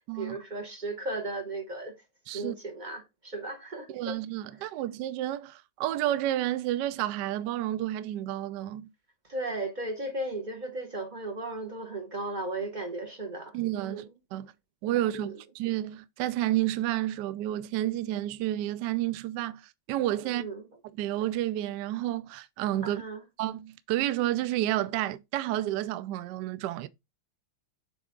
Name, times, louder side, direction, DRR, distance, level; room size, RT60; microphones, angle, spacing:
voice 1, 0.1-1.9 2.3-4.2 9.3-14.0 15.1-15.4 20.2-20.6 22.8-23.2, right 2 dB, 40° right, 0.7 m, -36 dB
voice 2, 3.9-8.9 13.5-14.0 14.3-14.5 14.8-15.3 15.5-19.6 19.9-20.4 21.0-23.0 23.4-26.9, right 14 dB, 75° right, 1.0 m, -30 dB
7.8 x 3.5 x 3.7 m
omnidirectional pair, 2.2 m